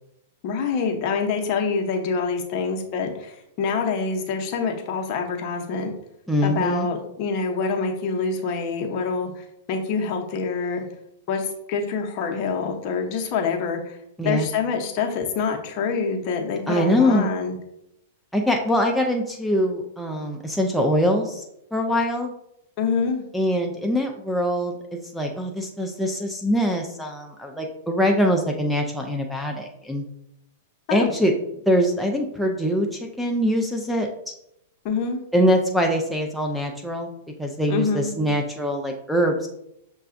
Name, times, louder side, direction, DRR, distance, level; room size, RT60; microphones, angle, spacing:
voice 1, 0.4-5.9 6.4-10.8 11.3-14.0 14.2-17.6 22.8-23.2 30.9-31.1 34.8-35.2 37.7-38.1, left 5 dB, 45° left, 2 dB, 0.8 m, -26 dB
voice 2, 6.3-6.9 14.2-14.5 16.7-17.3 18.3-21.4 21.7-22.3 23.3-30.0 30.9-31.3 31.7-34.3 35.3-39.5, equal, ahead, 0 dB, 0.5 m, -23 dB
6.5 x 2.3 x 2.5 m, 0.79 s
hypercardioid pair, 120°, 0 cm